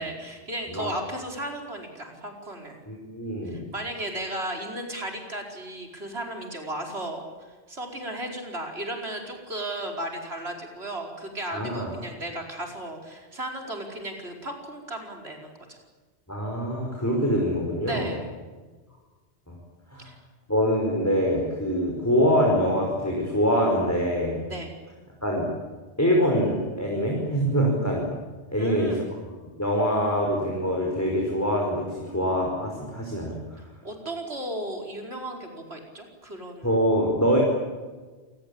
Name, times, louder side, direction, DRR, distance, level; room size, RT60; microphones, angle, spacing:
voice 1, 0.0-2.8 3.4-15.8 17.9-18.3 20.0-20.2 24.5-24.7 28.6-29.1 33.6-36.7, right 1 dB, 70° right, 2 dB, 5.2 m, -35 dB
voice 2, 2.9-3.6 11.5-11.9 16.3-18.1 19.5-19.6 19.9-20.1 20.5-24.4 25.2-25.5 26.0-28.1 28.5-29.2 29.6-33.4 36.6-37.4, equal, 15° left, -1 dB, 5.3 m, -24 dB
28.5 x 20.0 x 8.8 m, 1.3 s
omnidirectional pair, 1.1 m